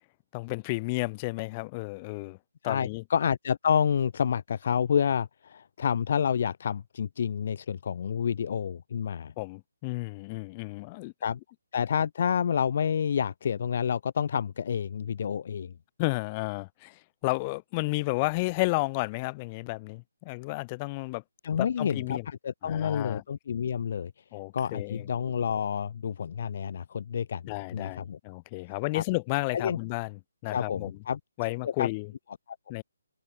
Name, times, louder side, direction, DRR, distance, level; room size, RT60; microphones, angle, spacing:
voice 1, 0.3-2.4 2.6-3.0 9.4-11.1 16.0-21.2 21.6-22.3 22.6-23.2 24.3-25.1 27.4-30.9 31.4-32.1 32.7-32.8, left 25 dB, 25° left, 3.4 m, -32 dB
voice 2, 2.6-9.3 11.2-11.4 11.7-15.7 21.4-24.1 24.5-27.4 27.7-28.2 28.9-29.0 29.5-29.8 30.5-31.2 31.6-31.9, left 7 dB, 45° left, 1.7 m, -29 dB
figure-of-eight pair, 145°, 0 cm